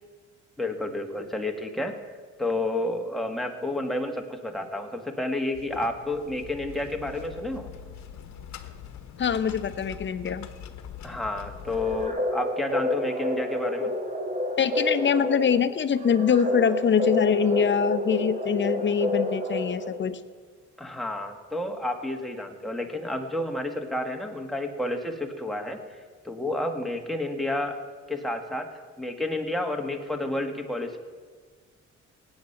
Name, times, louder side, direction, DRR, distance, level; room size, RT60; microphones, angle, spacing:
voice 1, 0.6-1.9 2.4-7.7 11.0-13.9 20.8-25.8 26.2-27.8 28.1-28.7 29.0-31.0, left 1 dB, ahead, 2 dB, 1.7 m, -30 dB
sound 1, 5.5-12.1, left 9 dB, 65° left, 1.1 m, -43 dB
voice 2, 9.2-10.5 14.6-20.2, left 7 dB, 40° left, 12 dB, 0.8 m, -24 dB
sound 2, 11.7-20.1, left 1 dB, 25° right, 2.0 m, -29 dB
18.0 x 8.9 x 5.8 m, 1.5 s
cardioid pair, 90°, 30 cm